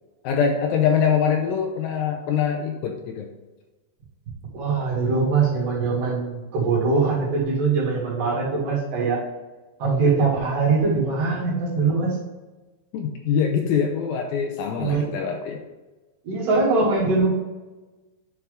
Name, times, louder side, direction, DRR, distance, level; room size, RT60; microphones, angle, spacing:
voice 1, 0.2-3.3 12.9-15.6, left 7 dB, 80° left, 3 dB, 2.3 m, -23 dB
voice 2, 4.5-9.2 9.8-12.2 14.8-15.1 16.2-17.3, right 4 dB, 60° right, -6 dB, 3.8 m, -22 dB
10.0 x 4.6 x 3.5 m, 1.2 s
omnidirectional pair, 4.6 m